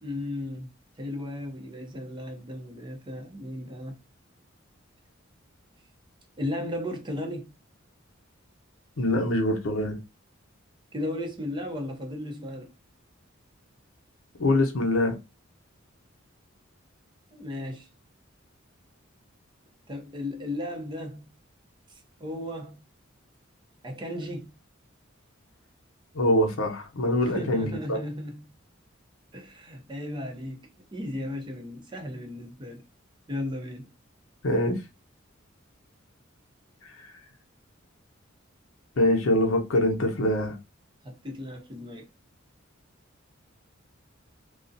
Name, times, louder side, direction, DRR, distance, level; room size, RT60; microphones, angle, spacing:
voice 1, 0.0-0.7 1.0-3.9 6.4-7.5 10.9-12.7 17.3-17.9 19.9-21.4 21.9-22.8 23.8-24.6 27.2-28.6 29.3-32.8 33.3-33.9 41.0-42.1, left 1 dB, 25° right, 0.5 m, -35 dB
voice 2, 9.0-10.0 14.4-15.1 26.1-28.0 34.4-34.8 37.0-37.1 39.0-40.6, left 1 dB, 80° left, 0.7 m, -24 dB
2.3 x 2.0 x 2.5 m
head